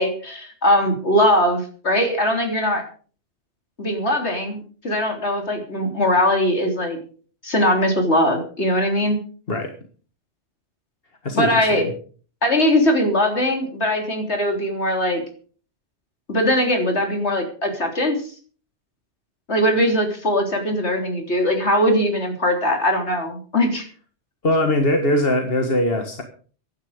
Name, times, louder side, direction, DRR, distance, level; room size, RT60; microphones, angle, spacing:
voice 1, 0.0-2.8 3.8-7.0 7.4-9.2 11.3-11.9 12.4-15.2 16.3-18.2 19.5-23.9, left 1 dB, 75° left, 3 dB, 3.8 m, -20 dB
voice 2, 11.2-11.9 24.4-26.2, left 1 dB, 55° left, 5 dB, 1.8 m, -21 dB
16.0 x 11.5 x 5.0 m, 0.42 s
omnidirectional pair, 1.1 m